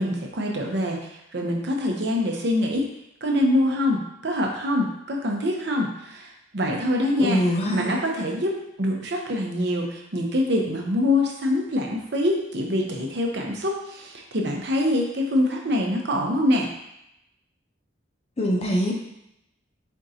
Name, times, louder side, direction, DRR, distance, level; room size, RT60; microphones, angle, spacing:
voice 1, 0.0-2.9 3.2-7.4 7.7-16.7, left 1 dB, 60° right, 0 dB, 0.7 m, -25 dB
voice 2, 7.2-8.0 18.4-18.9, equal, 35° left, -1 dB, 0.7 m, -23 dB
4.4 x 3.7 x 2.7 m, 0.83 s
head